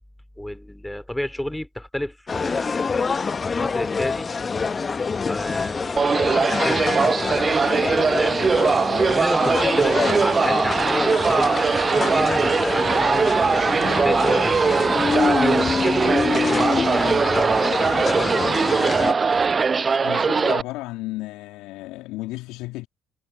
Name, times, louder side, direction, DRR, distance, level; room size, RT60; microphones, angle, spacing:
voice 1, 0.4-3.0 3.5-4.3 4.9-5.0 5.3-6.3 6.6-8.5 9.1-13.7 14.0-14.8 15.2-17.7 18.1-18.8, left 1 dB, 5° left, 2.8 m, -31 dB
sound 1, 2.3-19.1, left 5 dB, 35° left, 1.0 m, -25 dB
sound 2, 6.0-20.6, right 5 dB, 35° right, 0.5 m, -21 dB
sound 3, 13.3-15.3 15.7-19.7, right 10 dB, 55° right, 7.8 m, -50 dB
voice 2, 20.0-22.9, left 19 dB, 70° left, 3.1 m, -33 dB
hypercardioid pair, 55°, 0 cm